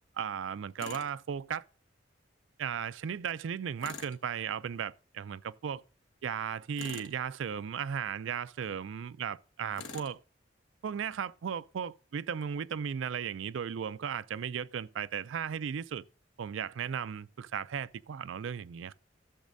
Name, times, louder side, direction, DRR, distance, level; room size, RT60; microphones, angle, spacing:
voice 1, 0.2-1.6 2.6-5.8 6.2-10.2 10.8-16.0 16.4-18.9, right 7 dB, 80° right, 0.4 m, -36 dB
Tools, 0.8-1.1 3.8-4.2 6.7-7.2 9.7-10.2, left 5 dB, 85° left, 1.2 m, -44 dB
13.5 x 7.2 x 2.6 m
head